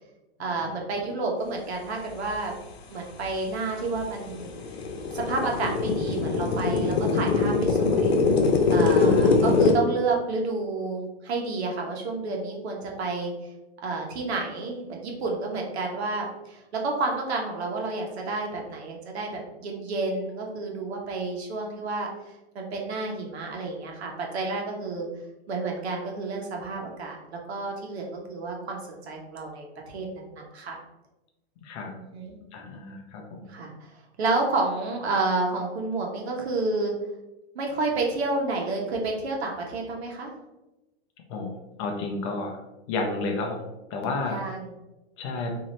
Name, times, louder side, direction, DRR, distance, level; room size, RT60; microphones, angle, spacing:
voice 1, 0.4-2.5 2.9-4.5 5.1-8.2 8.7-13.3 13.8-22.1 22.5-25.1 25.5-27.2 27.5-30.8 31.9-32.4 33.5-33.9 34.2-36.9 37.5-40.3 44.2-44.7, right 3 dB, 75° right, 0 dB, 1.1 m, -30 dB
sound 1, 3.2-3.3 3.8-9.7, left 4 dB, 70° left, 0.8 m, -22 dB
voice 2, 31.6-31.9 32.5-33.5 41.3-41.5 41.8-42.6 42.9-43.6 43.9-44.4 45.2-45.6, left 3 dB, 30° left, 2 dB, 0.5 m, -31 dB
3.9 x 2.8 x 3.1 m, 0.99 s
hypercardioid pair, 150°, 32 cm